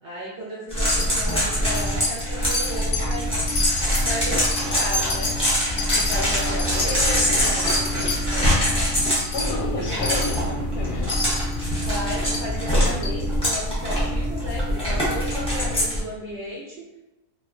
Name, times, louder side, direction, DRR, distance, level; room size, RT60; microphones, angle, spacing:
voice 1, 0.0-3.4 4.0-5.3 5.7-8.8 9.6-10.0 11.8-16.8, equal, 65° right, -5 dB, 0.7 m, -34 dB
sound 1, 0.7-16.0, equal, 5° left, 0.5 m, -24 dB
Wind chime, 0.9-1.4 1.7-2.3 2.5-3.2 3.5-8.2 8.6-8.7 9.0-9.5 10.0-10.4 11.1-11.6 12.2-12.5 13.0-13.1 13.4-13.5, left 3 dB, 60° left, 0.7 m, -29 dB
voice 2, 6.8-7.5 9.3-11.4, left 3 dB, 85° left, 1 dB, 1.1 m, -32 dB
2.8 x 2.1 x 2.4 m, 0.95 s
omnidirectional pair, 1.7 m